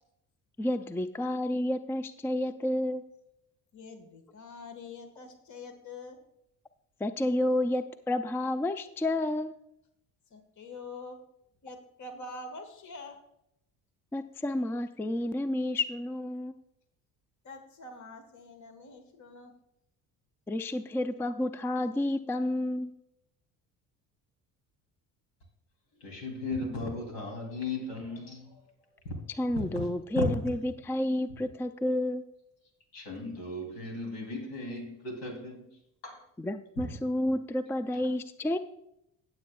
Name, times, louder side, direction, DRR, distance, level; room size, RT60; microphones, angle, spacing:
voice 1, 0.6-3.0 7.0-9.5 14.1-16.5 20.5-22.9 29.4-32.2 36.4-38.6, left 1 dB, 5° left, 11 dB, 0.4 m, -30 dB
voice 2, 3.7-6.2 10.3-11.2 11.6-13.2 17.4-19.5, left 3 dB, 50° left, 6 dB, 1.5 m, -45 dB
voice 3, 26.0-29.2 29.5-29.8 30.1-30.5 32.9-36.2, left 2 dB, 80° left, 2 dB, 3.1 m, -36 dB
16.5 x 7.9 x 2.3 m, 0.81 s
supercardioid pair, 75°, 38 cm